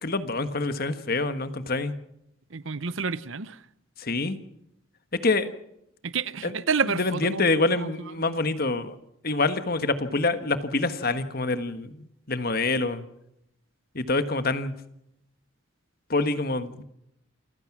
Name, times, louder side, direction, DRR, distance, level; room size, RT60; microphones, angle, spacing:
voice 1, 0.0-1.9 4.0-4.4 5.2-5.5 6.4-6.5 7.0-8.9 9.2-11.9 12.3-13.0 13.9-14.7 16.1-16.8, left 3 dB, 45° left, 11 dB, 1.4 m, -26 dB
voice 2, 2.5-3.6 6.0-7.5 7.8-7.9, right 5 dB, 70° right, 17 dB, 0.9 m, -29 dB
28.0 x 15.5 x 6.1 m, 0.77 s
head